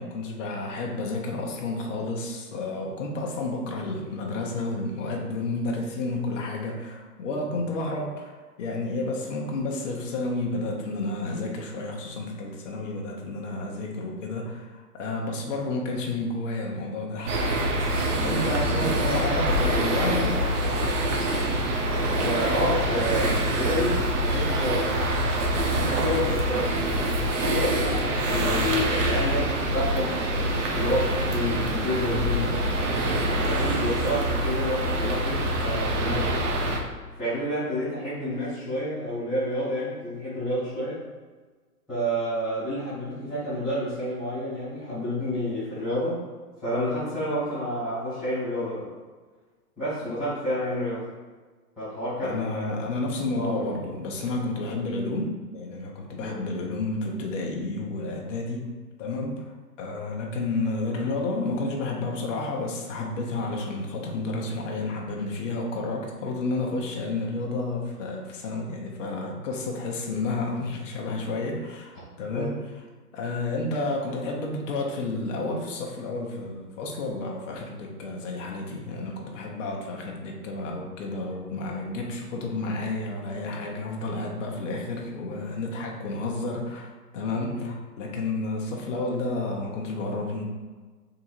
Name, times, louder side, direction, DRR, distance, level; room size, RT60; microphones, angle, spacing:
voice 1, 0.0-21.0 52.2-72.5 73.1-90.5, left 2 dB, 50° left, 0 dB, 1.0 m, -31 dB
sound 1, 17.3-36.8, right 1 dB, 50° right, 0.9 m, -25 dB
voice 2, 18.1-19.1 22.1-25.2 25.7-32.6 33.2-36.4 37.2-41.0 41.9-46.2 46.6-48.9 49.8-51.0 51.8-52.7 53.4-53.7 56.1-56.4 72.3-72.5 87.3-87.7, equal, ahead, -22 dB, 0.4 m, -30 dB
3.8 x 2.6 x 4.5 m, 1.4 s
hypercardioid pair, 135°, 47 cm